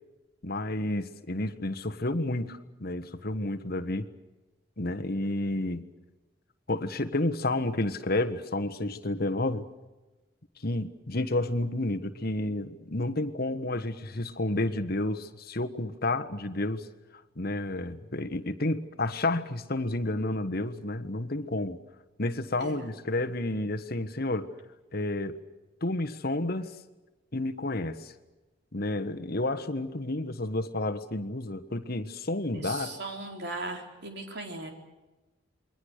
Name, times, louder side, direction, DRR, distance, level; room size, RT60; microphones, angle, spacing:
voice 1, 0.4-4.1 4.8-5.9 6.7-9.6 10.6-16.9 17.4-21.8 22.2-24.5 24.9-25.4 25.8-26.7 27.3-28.1 28.7-33.0, left 2 dB, 50° left, 8 dB, 1.4 m, -30 dB
voice 2, 32.5-34.7, right 2 dB, 55° right, 2 dB, 4.4 m, -38 dB
28.0 x 22.5 x 6.6 m, 1.1 s
head